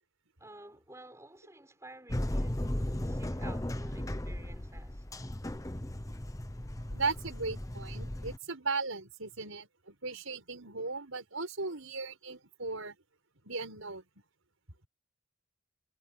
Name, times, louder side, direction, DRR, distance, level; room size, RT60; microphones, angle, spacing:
voice 1, 0.4-5.0, right 1 dB, 15° right, 6.0 m, -52 dB
sound 1, 2.1-8.4, left 1 dB, 15° left, 0.9 m, -36 dB
voice 2, 6.9-13.0 13.4-14.0, right 4 dB, 80° right, 5.6 m, -37 dB
head